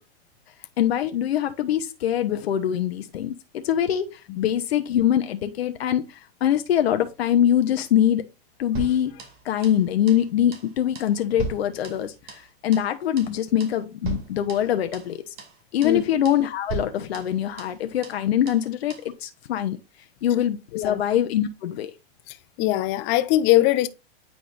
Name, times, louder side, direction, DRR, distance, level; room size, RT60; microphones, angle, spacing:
voice 1, 0.8-8.2 8.6-15.3 15.7-19.8 20.2-21.9, left 10 dB, 75° left, 0.8 m, -23 dB
sound 1, 8.7-9.8 10.1-10.3 10.5-10.7 10.9-12.5 12.7-12.9 13.2-13.3 13.6-13.8 14.0-15.1 15.4-15.5 15.8-16.0 16.2-16.4 16.7-17.8 18.0-18.2 18.5-18.6 18.9-19.1, right 4 dB, 50° right, 2.2 m, -37 dB
voice 2, 22.6-23.9, left 15 dB, 35° left, 0.6 m, -21 dB
8.8 x 4.9 x 2.4 m
hypercardioid pair, 125°, 31 cm